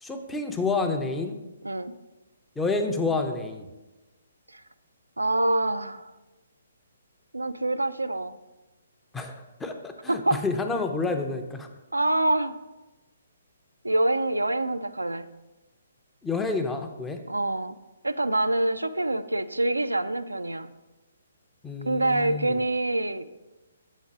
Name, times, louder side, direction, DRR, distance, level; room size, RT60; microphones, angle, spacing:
voice 1, 0.0-1.4 2.6-3.7 9.1-11.7 16.2-17.2 21.6-22.6, left 3 dB, 10° left, 5 dB, 0.6 m, -29 dB
voice 2, 5.2-6.1 7.3-8.4 10.1-10.4 11.9-12.5 13.8-15.3 17.3-17.8 18.0-20.7 21.8-23.2, right 2 dB, 80° right, 11 dB, 0.3 m, -26 dB
7.3 x 3.9 x 6.0 m, 1.1 s
figure-of-eight pair, 130°, 0 cm